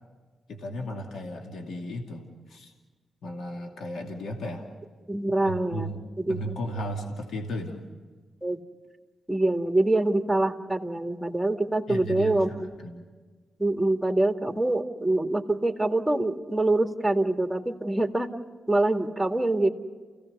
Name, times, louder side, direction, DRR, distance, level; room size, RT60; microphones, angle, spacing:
voice 1, 0.5-2.7 3.2-4.7 5.4-7.9 11.9-13.1, equal, 75° left, 1 dB, 2.5 m, -35 dB
voice 2, 5.1-5.9 6.2-6.6 8.4-8.6 9.3-12.5 13.6-18.3 18.7-19.7, right 2 dB, 5° right, 4 dB, 2.3 m, -25 dB
29.5 x 16.5 x 6.8 m, 1.4 s
supercardioid pair, 45°, 0 cm